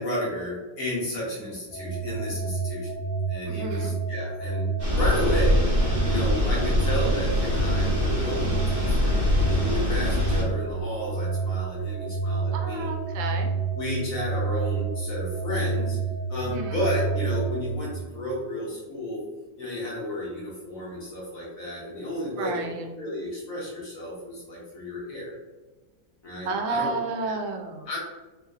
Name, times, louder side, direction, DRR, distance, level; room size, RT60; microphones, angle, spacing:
voice 1, 0.0-3.0 3.3-5.6 6.0-12.9 13.7-16.0 16.3-19.2 19.6-25.3 26.2-26.9 27.2-27.4 27.9-28.0, left 1 dB, 55° left, -5 dB, 1.2 m, -32 dB
sound 1, 1.7-17.8, right 4 dB, 70° left, 1.4 m, -29 dB
voice 2, 3.5-3.9 12.5-13.5 16.5-16.7 22.4-22.9 26.4-27.9, right 3 dB, 85° right, 2 dB, 1.3 m, -31 dB
sound 2, 4.8-10.4, left 1 dB, 35° right, 1.0 m, -24 dB
3.5 x 2.8 x 2.3 m, 1.2 s
omnidirectional pair, 2.1 m